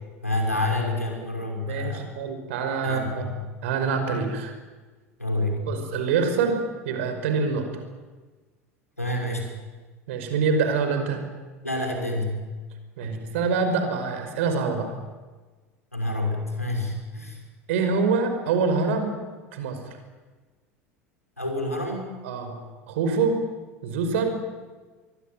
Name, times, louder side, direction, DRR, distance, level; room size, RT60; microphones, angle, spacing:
voice 1, 0.2-2.1 2.8-3.4 5.2-5.6 9.0-9.5 11.6-12.4 13.0-13.1 15.9-17.4 21.4-22.1, left 1 dB, 90° left, 1 dB, 6.0 m, -28 dB
voice 2, 1.7-3.3 3.6-4.5 5.7-6.6 6.9-7.7 10.1-11.2 13.0-15.0 17.7-19.1 19.5-20.0 22.2-22.6 22.9-23.4 23.8-24.4, right 5 dB, 60° right, 7 dB, 5.2 m, -25 dB
24.0 x 23.0 x 9.2 m, 1.3 s
figure-of-eight pair, 75°, 8 cm